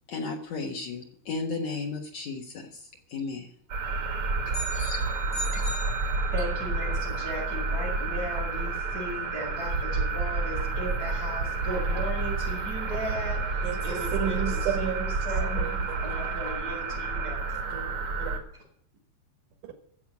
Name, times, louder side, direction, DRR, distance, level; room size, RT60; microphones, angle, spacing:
voice 1, 0.1-2.8 3.1-3.5 4.5-5.0 5.5-5.6, left 4 dB, 75° left, 1 dB, 1.5 m, -34 dB
sound 1, 3.7-18.4, right 3 dB, 65° right, 1.3 m, -29 dB
sound 2, 4.5-6.7, equal, 40° left, 5.9 m, -38 dB
voice 2, 6.3-17.6, equal, 20° right, -4 dB, 6.4 m, -37 dB
voice 3, 13.6-15.1 15.6-16.0 17.7-18.4 19.6-19.7, right 9 dB, 80° right, 3 dB, 4.0 m, -33 dB
14.0 x 7.6 x 9.4 m, 0.66 s
omnidirectional pair, 5.4 m